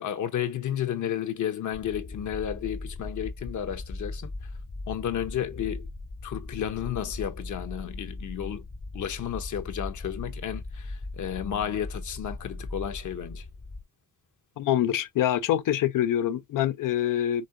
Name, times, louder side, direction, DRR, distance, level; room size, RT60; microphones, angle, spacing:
voice 1, 0.0-4.3 4.9-5.9 6.2-8.6 8.9-13.4, left 10 dB, 70° left, 1.0 m, -32 dB
sound 1, 1.7-13.8, left 2 dB, 20° left, 0.3 m, -39 dB
voice 2, 14.6-17.5, left 11 dB, 85° left, 0.5 m, -25 dB
5.3 x 3.6 x 2.5 m
wide cardioid pair, 165°, 31 cm